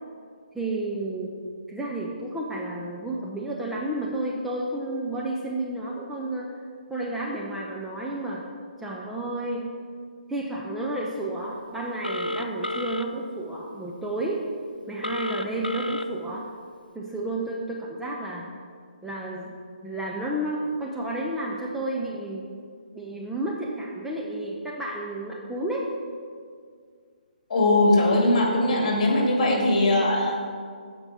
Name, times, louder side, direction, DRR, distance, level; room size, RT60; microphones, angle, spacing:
voice 1, 0.5-1.4 1.7-6.6 6.9-8.4 8.8-9.7 10.3-14.4 14.9-16.5 16.9-18.5 19.0-19.5 19.8-22.4 22.9-25.9, right 1 dB, 5° right, -4 dB, 0.7 m, -31 dB
Telephone, 12.0-13.1 15.0-16.0, left 1 dB, 85° left, 0.6 m, -30 dB
voice 2, 27.5-30.5, left 1 dB, 45° left, 0 dB, 2.4 m, -21 dB
15.0 x 5.3 x 4.2 m, 2.1 s
figure-of-eight pair, 135°, 5 cm